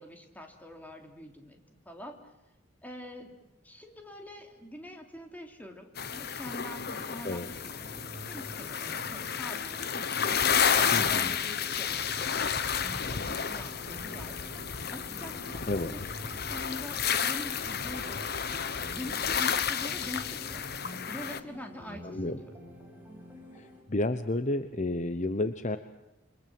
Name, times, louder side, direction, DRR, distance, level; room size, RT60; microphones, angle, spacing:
voice 1, 0.0-2.1 2.8-3.4 3.6-7.8 8.3-10.1 10.3-14.4 14.9-18.2 18.9-20.6 21.1-22.5, left 1 dB, 10° left, 3 dB, 3.3 m, -45 dB
sound 1, 6.0-21.4, left 7 dB, 55° left, 1.2 m, -31 dB
sound 2, 7.8-23.8, equal, 10° right, 6.3 m, -48 dB
voice 2, 10.9-11.4 15.7-15.9 22.0-22.4 23.5-25.8, left 2 dB, 40° left, 10 dB, 0.9 m, -31 dB
27.5 x 24.5 x 7.8 m, 0.93 s
head